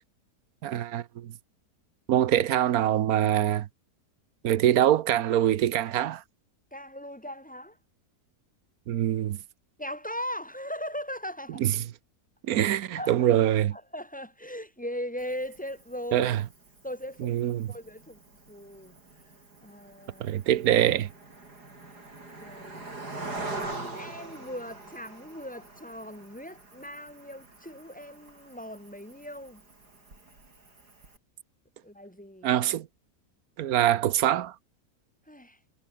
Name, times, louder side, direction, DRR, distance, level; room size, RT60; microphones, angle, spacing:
voice 1, 0.6-1.3 2.1-3.7 4.4-6.2 8.9-9.4 11.6-11.7 12.4-13.8 16.1-16.4 17.2-17.7 20.2-21.1 32.4-32.9 33.6-34.5, right 11 dB, 70° right, 1.2 m, -24 dB
voice 2, 6.7-7.8 9.8-11.6 13.0-13.3 13.7-16.3 16.8-18.2 18.5-18.9 19.6-20.3 22.4-22.9 23.5-29.6 31.8-32.5 35.3-35.6, equal, 5° left, 2.4 m, -39 dB
Cricket, 15.2-31.2, right 2 dB, 90° right, 6.3 m, -44 dB
omnidirectional pair, 1.7 m